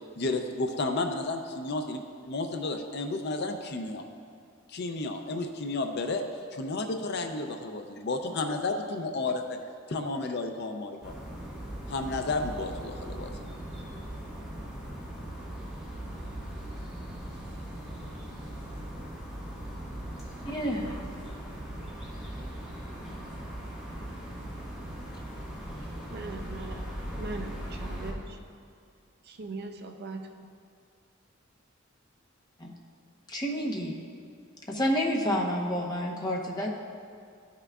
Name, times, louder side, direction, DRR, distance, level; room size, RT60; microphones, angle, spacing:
voice 1, 0.2-4.0 4.7-6.2 6.5-9.6 9.9-11.1 11.9-13.3, left 3 dB, 55° left, 5 dB, 0.5 m, -32 dB
sound 1, 11.0-28.1, right 1 dB, ahead, 1.5 m, -39 dB
voice 2, 20.4-20.9 32.6-32.7 33.3-34.0 34.7-36.7, equal, 20° left, -1 dB, 0.9 m, -29 dB
voice 3, 26.1-26.9 27.2-28.4 29.3-30.5, right 3 dB, 50° right, 5 dB, 0.5 m, -40 dB
13.5 x 5.7 x 2.4 m, 2.3 s
head